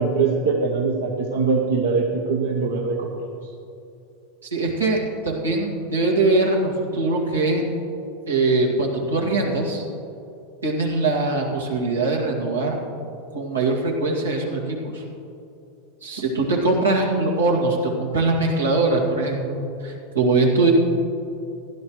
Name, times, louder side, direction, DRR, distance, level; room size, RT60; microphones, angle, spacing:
voice 1, 0.0-3.1, right 4 dB, 75° right, 0 dB, 1.0 m, -22 dB
voice 2, 4.4-7.7 8.3-9.8 10.6-12.8 13.3-15.0 16.0-20.7, right 2 dB, 90° right, -1 dB, 2.0 m, -22 dB
15.5 x 11.5 x 3.1 m, 2.7 s
hypercardioid pair, 90°, 0 cm